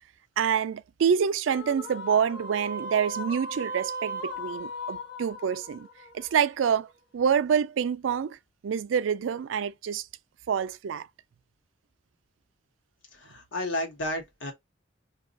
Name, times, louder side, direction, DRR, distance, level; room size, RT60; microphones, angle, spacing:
voice 1, 0.4-5.9 6.1-6.9 7.1-8.4 8.6-10.1 10.5-11.1, right 7 dB, 85° right, 0.4 m, -27 dB
sound 1, 1.5-6.9, equal, 60° left, 0.8 m, -38 dB
voice 2, 13.1-14.5, left 1 dB, 80° left, 1.1 m, -32 dB
2.6 x 2.4 x 3.7 m
head